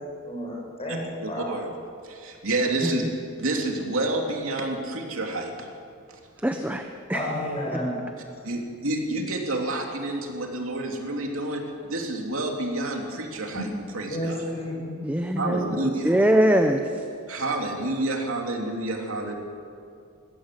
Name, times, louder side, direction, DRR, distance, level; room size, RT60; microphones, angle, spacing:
voice 1, 0.2-1.4 7.1-7.9 13.5-13.6 14.1-14.9, equal, 30° left, -2 dB, 6.4 m, -31 dB
voice 2, 0.9-1.6 2.0-3.0 3.4-5.7 6.1-6.2 8.4-13.6 13.9-14.5 15.4-16.1 17.3-19.3, right 2 dB, 75° right, 1 dB, 2.9 m, -29 dB
voice 3, 6.4-7.3 7.7-7.8 15.0-15.7 16.0-16.8, right 1 dB, 10° right, 5 dB, 0.9 m, -22 dB
21.5 x 16.5 x 7.6 m, 2.4 s
head